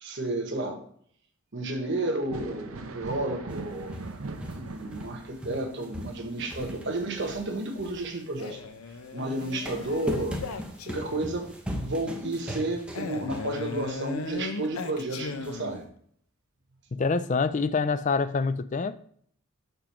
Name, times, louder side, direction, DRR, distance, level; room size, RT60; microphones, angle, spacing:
voice 1, 0.0-0.8 1.5-4.0 4.5-8.6 9.1-10.4 10.9-11.5 11.8-15.8, right 2 dB, 50° right, 1.1 m, -32 dB
Thunder, 2.1-11.5 11.8-13.1 14.6-14.7 15.5-15.7, right 3 dB, 70° right, 0.7 m, -43 dB
sound 1, 3.5-5.2 5.4-8.5 9.2-13.9 14.3-14.4 15.4-15.5, equal, 5° right, 0.8 m, -39 dB
Male speech man speaking, 8.4-11.4 13.0-15.9, left 4 dB, 75° left, 0.7 m, -37 dB
voice 2, 16.9-19.0, left 4 dB, 35° left, 0.3 m, -26 dB
6.9 x 3.7 x 5.8 m
head